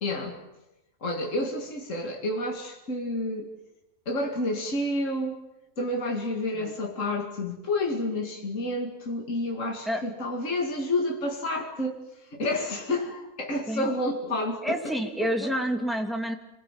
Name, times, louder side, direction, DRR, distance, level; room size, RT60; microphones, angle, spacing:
voice 1, 0.0-0.4 1.0-3.5 4.1-5.4 5.8-12.0 12.3-14.8 15.4-15.5, left 1 dB, 50° left, 1 dB, 2.7 m, -29 dB
voice 2, 14.6-16.4, equal, ahead, 3 dB, 2.9 m, -28 dB
27.5 x 21.5 x 7.5 m, 0.95 s
omnidirectional pair, 1.7 m